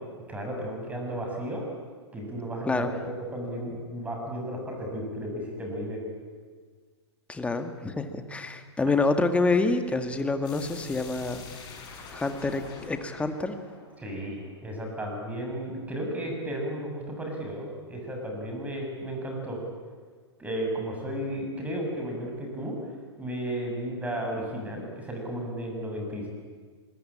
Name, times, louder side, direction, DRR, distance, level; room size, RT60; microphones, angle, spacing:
voice 1, 0.3-1.6 2.1-6.0 14.0-19.6 20.4-22.8 23.2-26.3, right 1 dB, 10° right, 1 dB, 7.3 m, -34 dB
voice 2, 7.3-11.4 12.1-13.6, left 3 dB, 10° left, 7 dB, 2.0 m, -27 dB
sound 1, 10.4-15.2, left 5 dB, 30° left, 6.8 m, -46 dB
25.0 x 22.0 x 8.8 m, 1.5 s
figure-of-eight pair, 110°, 15 cm